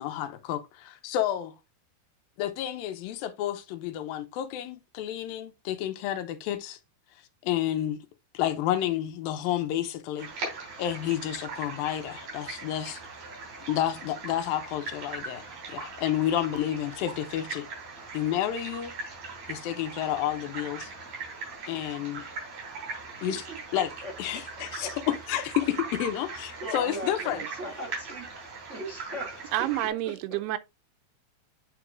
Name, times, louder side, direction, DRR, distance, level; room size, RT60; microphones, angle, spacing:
voice 1, 0.0-1.5 2.4-6.8 7.4-8.0 8.3-10.3 10.8-13.0 13.7-15.4 15.7-17.7 18.1-18.9 19.5-20.9 21.7-22.2 23.2-23.4 23.7-23.9 24.2-27.4, left 12 dB, 75° left, 2.4 m, -30 dB
sound 1, 10.2-29.9, right 4 dB, 55° right, 4.9 m, -40 dB
voice 2, 23.3-23.6 24.0-24.9 26.6-28.3 28.7-29.7 30.0-30.1, right 1 dB, 30° right, 1.4 m, -39 dB
voice 3, 29.5-30.6, right 14 dB, 90° right, 2.6 m, -28 dB
9.1 x 4.6 x 2.4 m
omnidirectional pair, 4.6 m